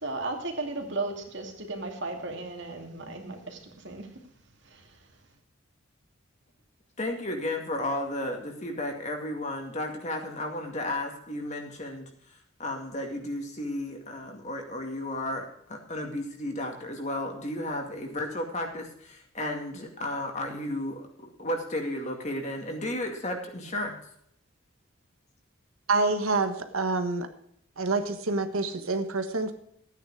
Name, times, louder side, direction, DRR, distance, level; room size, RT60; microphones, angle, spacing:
voice 1, 0.0-4.1 4.7-4.8, right 2 dB, 55° right, 2 dB, 2.5 m, -35 dB
voice 2, 7.0-12.1 12.6-24.0, left 1 dB, 35° left, 2 dB, 2.3 m, -33 dB
voice 3, 25.9-27.3 27.8-29.5, right 3 dB, 85° right, 7 dB, 1.4 m, -27 dB
14.0 x 9.4 x 4.8 m, 0.70 s
head